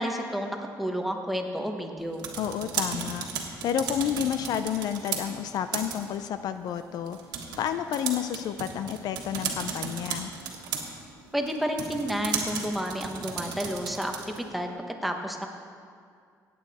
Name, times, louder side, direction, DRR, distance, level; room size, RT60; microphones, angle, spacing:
voice 1, 0.0-2.3 11.3-15.5, equal, ahead, 3 dB, 1.0 m, -31 dB
sound 1, 2.0-14.5, right 6 dB, 80° right, 1.5 m, -36 dB
voice 2, 2.4-3.3 3.6-7.2 7.6-10.3, left 9 dB, 70° left, 10 dB, 0.5 m, -30 dB
17.0 x 8.7 x 4.1 m, 2.2 s
cardioid pair, 130°, 7 cm